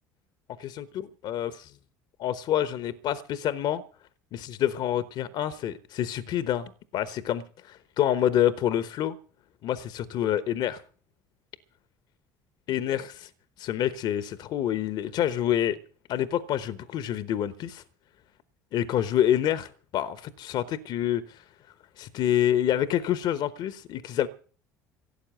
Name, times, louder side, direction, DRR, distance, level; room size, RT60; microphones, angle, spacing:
voice 1, 0.6-1.7 2.2-3.8 4.3-9.1 9.6-10.8 12.7-13.1 13.6-15.8 16.1-17.8 18.7-21.4 22.0-24.3, left 11 dB, 50° left, 1.0 m, -27 dB
17.0 x 8.5 x 7.7 m
figure-of-eight pair, 60°, 10 cm